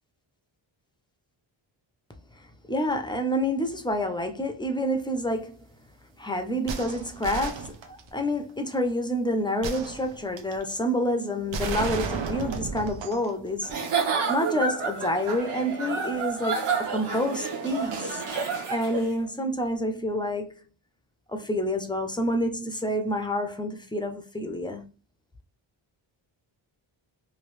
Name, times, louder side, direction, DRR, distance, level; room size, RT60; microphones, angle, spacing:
voice 1, 2.7-5.6 6.2-13.9 14.3-18.2 18.7-20.5 21.3-24.8, equal, 10° left, 0.5 m, -28 dB
sound 1, 6.7-8.3 9.6-10.6 11.5-13.3 13.7-13.8, right 5 dB, 70° right, 0.7 m, -33 dB
Giggle / Chuckle chortle, 13.6-19.1, right 5 dB, 85° right, 1.2 m, -29 dB
3.1 x 2.7 x 3.1 m
wide cardioid pair, 110°, 48 cm